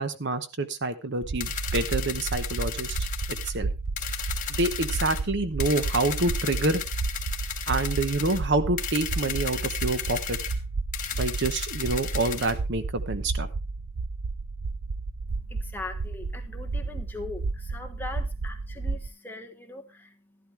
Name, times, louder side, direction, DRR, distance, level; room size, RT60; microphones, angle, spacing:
voice 1, 0.0-3.0 3.4-3.7 4.5-6.8 7.7-10.4 11.2-13.5, right 2 dB, 55° right, 11 dB, 1.0 m, -27 dB
sound 1, 1.2-19.1, right 3 dB, 75° right, 0.6 m, -32 dB
sound 2, 1.4-3.5 4.0-5.2 5.6-8.4 8.8-10.6 10.9-12.5, left 9 dB, 40° left, 1.7 m, -34 dB
voice 2, 15.5-20.2, left 3 dB, 10° left, 4 dB, 1.4 m, -40 dB
12.5 x 12.0 x 3.3 m, 0.26 s
head